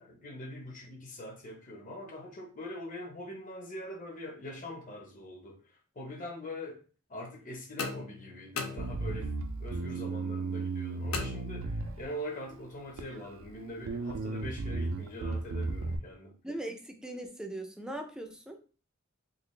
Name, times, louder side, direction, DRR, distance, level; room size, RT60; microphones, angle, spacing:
voice 1, 0.0-5.6 6.0-6.8 7.1-9.3 9.6-16.3, left 1 dB, 40° left, 2 dB, 0.9 m, -43 dB
sound 1, 7.8-9.4 11.1-12.1, left 5 dB, 90° left, 0.5 m, -39 dB
Bass guitar, 8.8-12.4 13.0-13.5 13.8-16.0, right 3 dB, 70° right, 0.4 m, -35 dB
voice 2, 16.4-18.6, right 1 dB, 5° right, 4 dB, 0.4 m, -40 dB
3.9 x 2.4 x 3.2 m, 0.37 s
head